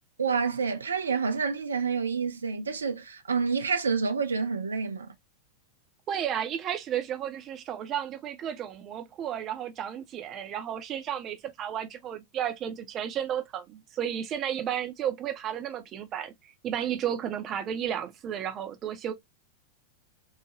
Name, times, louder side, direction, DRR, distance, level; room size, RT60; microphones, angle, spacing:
voice 1, 0.2-5.1, right 5 dB, 75° right, 0.5 m, -28 dB
voice 2, 6.1-19.1, right 9 dB, 30° right, 0.7 m, -33 dB
3.2 x 2.1 x 2.9 m
figure-of-eight pair, 90°, 0 cm